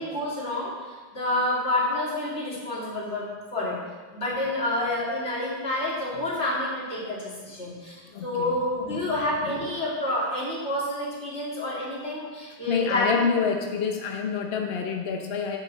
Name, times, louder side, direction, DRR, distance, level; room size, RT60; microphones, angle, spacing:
voice 1, 0.0-3.8 4.1-13.3, left 1 dB, 35° left, -6 dB, 2.8 m, -29 dB
voice 2, 8.1-8.6 8.9-9.1 9.4-9.7 12.7-15.6, left 6 dB, 65° left, 2 dB, 0.6 m, -27 dB
9.0 x 8.8 x 4.0 m, 1.4 s
omnidirectional pair, 2.1 m